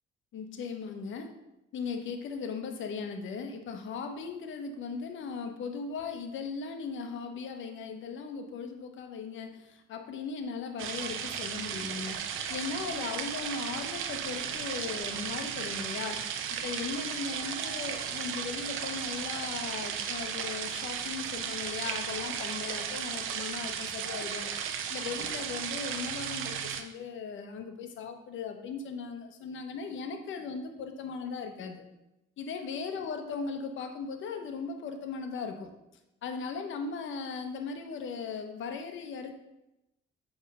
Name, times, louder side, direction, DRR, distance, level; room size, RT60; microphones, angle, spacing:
voice 1, 0.3-1.3 1.7-31.8 32.4-35.7 36.2-39.4, left 5 dB, 75° left, 6 dB, 1.1 m, -38 dB
sound 1, 10.8-26.8, right 8 dB, 90° right, 0.7 m, -35 dB
8.5 x 3.6 x 5.5 m, 0.91 s
cardioid pair, 90°, 20 cm